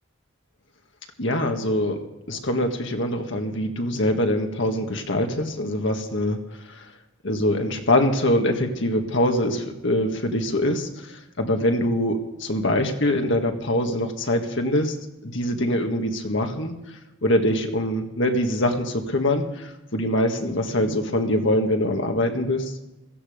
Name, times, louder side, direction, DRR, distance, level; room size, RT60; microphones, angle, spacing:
voice 1, 1.2-2.0 2.3-6.4 6.7-6.8 7.2-15.0 15.2-16.8 17.2-22.7, left 1 dB, 60° left, 4 dB, 1.8 m, -23 dB
16.5 x 14.0 x 5.1 m, 0.97 s
head